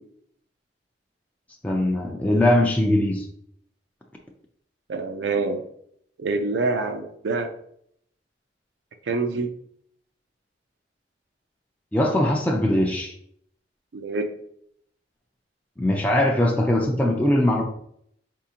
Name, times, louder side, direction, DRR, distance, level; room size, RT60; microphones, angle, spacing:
voice 1, 1.6-3.3 11.9-13.1 15.8-17.6, left 1 dB, 10° left, 0 dB, 0.4 m, -21 dB
voice 2, 4.9-5.6 6.2-7.5 9.1-9.5 13.9-14.3, right 3 dB, 85° right, 5 dB, 0.4 m, -26 dB
5.0 x 3.6 x 2.8 m, 0.70 s
head